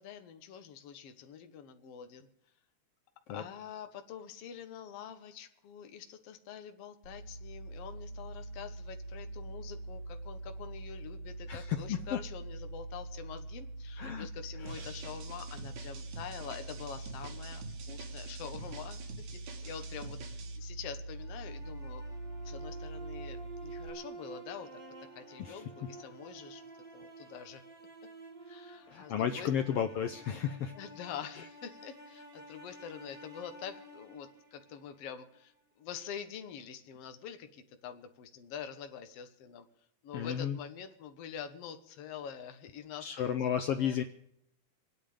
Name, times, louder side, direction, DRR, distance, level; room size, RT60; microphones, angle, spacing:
voice 1, 0.0-2.3 3.3-22.0 22.4-24.7 25.1-26.6 26.9-27.6 28.4-29.8 30.7-39.7 40.0-44.0, left 8 dB, 60° left, 7 dB, 2.0 m, -46 dB
sound 1, 7.0-23.9, right 2 dB, 35° left, 1.3 m, -43 dB
voice 2, 11.5-12.2 14.0-14.3 14.6-14.9 25.4-25.6 28.9-30.7 40.1-40.6 43.0-44.0, left 9 dB, 80° left, 8 dB, 1.4 m, -33 dB
sound 2, 14.7-20.6, right 5 dB, 75° right, 3.0 m, -48 dB
sound 3, 21.1-35.2, right 2 dB, 25° right, 1.3 m, -50 dB
26.5 x 9.4 x 5.0 m, 0.76 s
omnidirectional pair, 3.5 m